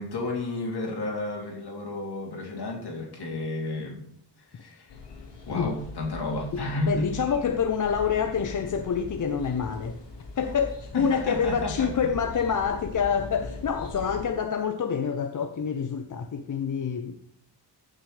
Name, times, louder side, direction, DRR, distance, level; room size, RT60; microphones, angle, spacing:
voice 1, 0.0-4.0 4.4-5.0 5.5-7.1 10.9-11.9, left 2 dB, 65° left, 2.7 m, -32 dB
sound 1, 4.9-14.3, left 3 dB, 80° left, 2.4 m, -41 dB
voice 2, 6.8-10.0 10.4-17.2, left 6 dB, 50° left, 0.6 m, -27 dB
14.5 x 6.1 x 3.2 m
wide cardioid pair, 160°, 42 cm